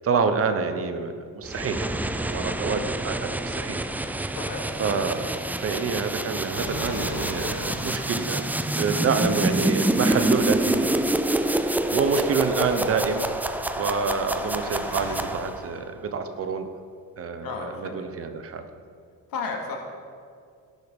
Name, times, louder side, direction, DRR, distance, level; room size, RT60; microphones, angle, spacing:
voice 1, 0.0-3.8 4.1-4.4 4.8-11.1 11.5-11.6 11.9-13.3 13.8-16.7 17.2-17.5 17.7-18.6, right 5 dB, 40° right, 8 dB, 1.0 m, -27 dB
sound 1, 1.4-15.7, right 1 dB, 5° right, 0.3 m, -27 dB
voice 2, 4.3-4.7 17.4-18.3 19.3-19.8, left 4 dB, 85° left, 1 dB, 2.6 m, -33 dB
sound 2, 6.5-15.3, left 2 dB, 60° left, 3.1 m, -41 dB
17.0 x 11.0 x 5.4 m, 2.2 s
cardioid pair, 175°, 34 cm